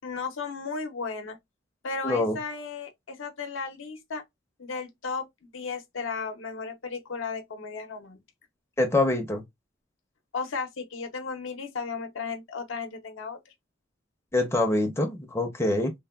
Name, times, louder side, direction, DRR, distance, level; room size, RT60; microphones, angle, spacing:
voice 1, 0.0-1.4 1.8-4.2 4.6-5.3 5.5-8.2 10.3-13.4, left 4 dB, 80° left, 0.6 m, -34 dB
voice 2, 2.0-2.4 8.8-9.4 14.3-15.9, left 2 dB, 15° left, 0.5 m, -25 dB
3.3 x 2.2 x 2.2 m
head